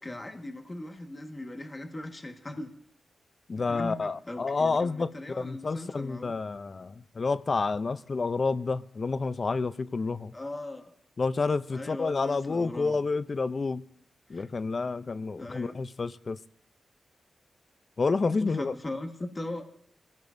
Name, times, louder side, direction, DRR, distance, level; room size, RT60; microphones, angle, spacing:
voice 1, 0.0-2.7 3.7-6.3 10.3-10.9 11.7-13.0 14.3-14.5 15.4-15.8 18.2-19.7, left 1 dB, 25° left, 1.5 m, -39 dB
voice 2, 3.5-10.3 11.2-13.8 14.3-16.4 18.0-18.7, left 4 dB, 45° left, 0.5 m, -29 dB
23.5 x 16.0 x 2.6 m
cardioid pair, 80°, 0 cm